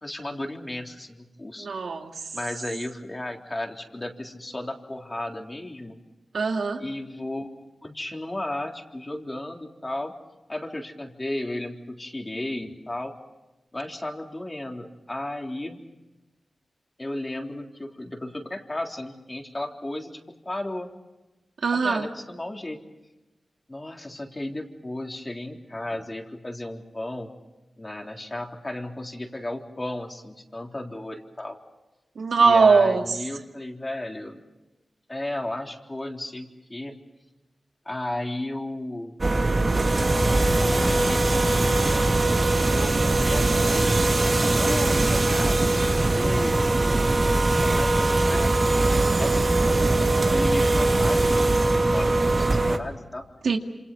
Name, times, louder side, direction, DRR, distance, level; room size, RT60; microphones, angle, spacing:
voice 1, 0.0-1.7 2.3-6.0 6.8-10.1 10.5-13.1 13.7-15.8 17.0-20.9 21.7-22.8 23.7-27.3 27.8-31.6 32.4-34.4 35.1-37.0 37.9-39.1 40.3-40.5 40.8-42.2 42.6-46.6 46.9-48.9 49.2-53.3, left 1 dB, 25° left, 2 dB, 3.7 m, -34 dB
voice 2, 1.6-2.1 6.3-6.8 21.6-22.1 32.2-33.0 53.4-53.6, right 4 dB, 85° right, 4 dB, 2.1 m, -20 dB
sound 1, 39.2-52.8, right 2 dB, 45° right, 2.4 m, -21 dB
28.0 x 27.0 x 5.5 m, 1.1 s
cardioid pair, 55°, 0 cm